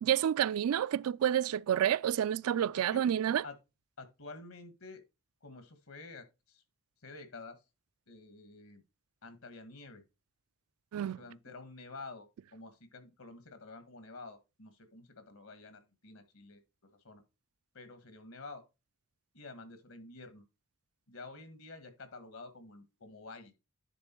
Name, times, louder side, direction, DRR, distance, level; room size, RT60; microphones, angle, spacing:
voice 1, 0.0-3.4 10.9-11.2, right 10 dB, 85° right, 0.3 m, -29 dB
voice 2, 2.7-3.0 3.4-3.6 4.0-5.0 5.4-6.6 7.0-7.6 8.1-8.8 9.2-10.0 11.0-16.6 17.0-17.2 17.7-18.6 19.3-20.4 21.1-23.5, left 3 dB, 80° left, 1.6 m, -49 dB
10.0 x 3.7 x 4.5 m
head